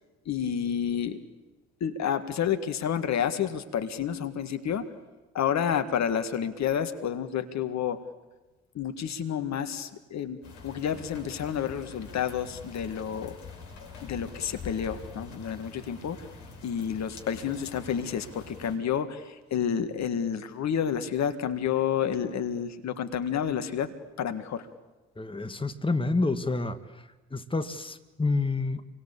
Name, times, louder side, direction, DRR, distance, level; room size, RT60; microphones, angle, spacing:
voice 1, 0.3-1.2 1.8-4.9 5.3-8.0 8.8-13.4 14.0-16.2 16.6-24.7, left 8 dB, 55° left, 9 dB, 1.9 m, -30 dB
sound 1, 10.4-18.8, left 5 dB, 70° left, 5.6 m, -45 dB
voice 2, 25.2-26.8 27.3-28.8, left 3 dB, 15° left, 9 dB, 1.9 m, -28 dB
28.5 x 24.0 x 8.5 m, 1.1 s
hypercardioid pair, 45°, 33 cm